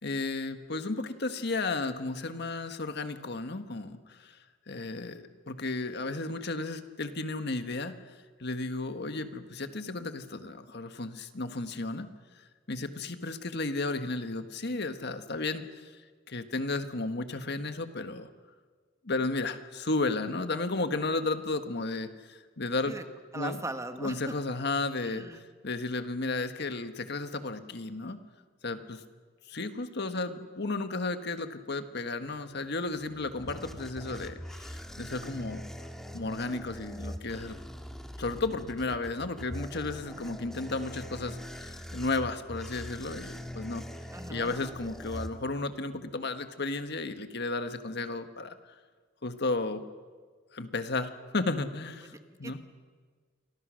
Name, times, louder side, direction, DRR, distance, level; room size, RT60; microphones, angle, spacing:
voice 1, 0.0-4.4 4.7-7.9 8.4-12.1 12.7-15.9 16.3-18.3 19.0-22.9 23.3-23.6 24.0-25.3 25.6-28.2 28.6-29.0 29.5-35.6 36.1-37.6 38.2-43.8 44.3-48.7 49.2-49.8 50.5-52.6, left 3 dB, 60° left, 8 dB, 1.6 m, -33 dB
voice 2, 23.3-24.2 25.0-25.4 44.1-44.5 52.0-52.6, right 2 dB, 15° right, 7 dB, 1.4 m, -39 dB
sound 1, 32.9-45.9, equal, ahead, 1.7 m, -42 dB
29.0 x 24.5 x 6.5 m, 1.5 s
head